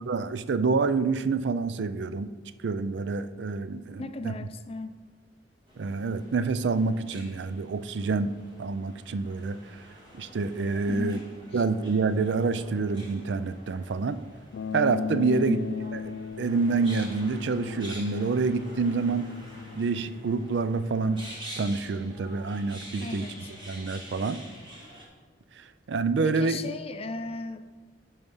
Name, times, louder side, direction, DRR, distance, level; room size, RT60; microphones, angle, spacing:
voice 1, 0.1-2.3 2.6-4.3 5.8-9.6 10.1-11.2 11.5-14.2 14.7-15.6 15.9-19.2 19.7-21.2 21.6-23.3 23.7-24.4 25.6-26.6, right 4 dB, 75° right, 0.4 m, -27 dB
voice 2, 4.0-5.0 10.8-11.3 11.5-11.6 15.3-15.6 18.9-19.1 23.0-23.5 26.2-27.6, left 3 dB, 35° left, 0.5 m, -35 dB
sound 1, 5.7-25.1, equal, 25° right, 1.7 m, -47 dB
sound 2, 14.5-24.6, left 6 dB, 85° left, 0.3 m, -39 dB
10.5 x 4.7 x 5.5 m
head